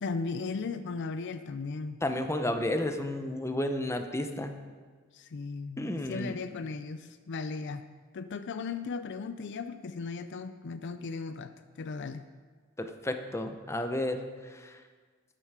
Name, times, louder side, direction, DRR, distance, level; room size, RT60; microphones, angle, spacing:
voice 1, 0.0-2.0 5.1-7.8 8.1-11.5 11.8-12.2, left 4 dB, 60° left, 11 dB, 0.5 m, -36 dB
voice 2, 2.0-4.6 5.8-6.4 12.8-14.2, left 1 dB, 15° left, 7 dB, 0.7 m, -32 dB
12.0 x 9.3 x 4.8 m, 1.5 s
head